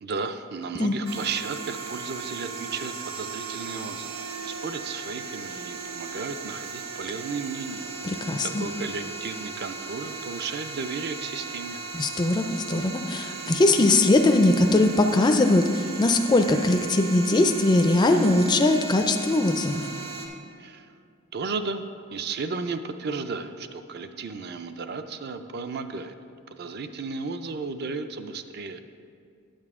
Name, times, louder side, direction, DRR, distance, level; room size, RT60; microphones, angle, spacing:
voice 1, 0.0-4.1 4.4-7.9 8.6-11.8 20.6-20.9 21.3-21.8 22.1-26.1 26.5-28.8, right 4 dB, 50° right, 9 dB, 0.4 m, -34 dB
sound 1, 1.1-20.3, right 4 dB, 90° right, 1.1 m, -37 dB
voice 2, 8.0-8.7 11.9-19.9, left 2 dB, 20° left, 5 dB, 0.3 m, -21 dB
8.8 x 8.5 x 3.6 m, 2.3 s
head